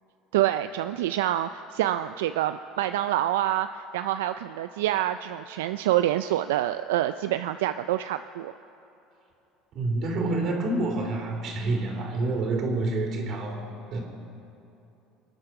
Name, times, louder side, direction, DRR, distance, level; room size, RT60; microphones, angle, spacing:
voice 1, 0.3-8.5, right 13 dB, 85° right, 10 dB, 0.3 m, -27 dB
voice 2, 9.7-13.6 13.9-14.0, right 2 dB, 55° right, 2 dB, 3.4 m, -28 dB
25.5 x 8.8 x 5.7 m, 2.9 s
supercardioid pair, 90°, 0 cm